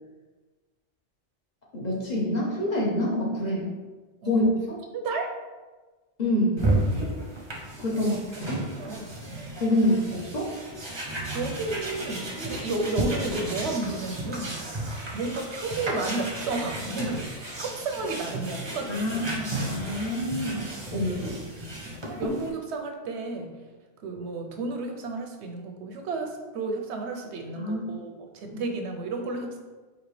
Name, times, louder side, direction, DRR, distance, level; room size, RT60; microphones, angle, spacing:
voice 1, 1.7-3.7 4.2-4.8 6.2-6.7 7.8-8.1 8.5-8.6 9.6-10.5 18.9-20.6 20.9-21.3 27.5-27.8 28.5-28.6, left 1 dB, 40° left, -4 dB, 1.0 m, -26 dB
voice 2, 4.2-4.5 4.9-5.3 7.9-8.2 8.7-9.4 11.3-14.6 15.1-19.2 20.9-21.1 22.1-23.5 24.0-29.6, right 3 dB, 80° right, 4 dB, 0.9 m, -32 dB
sound 1, 6.6-22.5, right 1 dB, 30° right, 0.6 m, -33 dB
5.0 x 2.7 x 3.1 m, 1.3 s
omnidirectional pair, 1.2 m